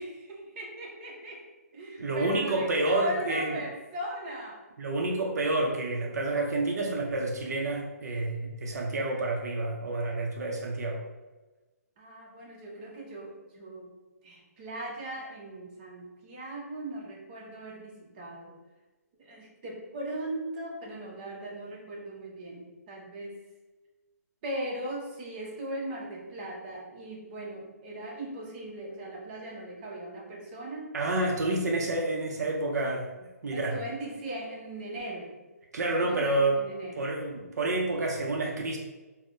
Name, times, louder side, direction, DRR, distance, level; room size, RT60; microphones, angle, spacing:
voice 1, 0.0-1.4 1.7-4.6 12.0-13.9 14.2-18.6 19.2-23.4 24.4-30.9 33.5-35.3 35.8-37.1, right 1 dB, 35° right, -2 dB, 0.7 m, -38 dB
voice 2, 2.0-3.6 4.8-11.0 30.9-33.8 35.7-36.6 37.0-38.8, right 2 dB, 75° right, 0 dB, 0.5 m, -29 dB
3.5 x 2.0 x 2.6 m, 1.2 s
hypercardioid pair, 155°, 9 cm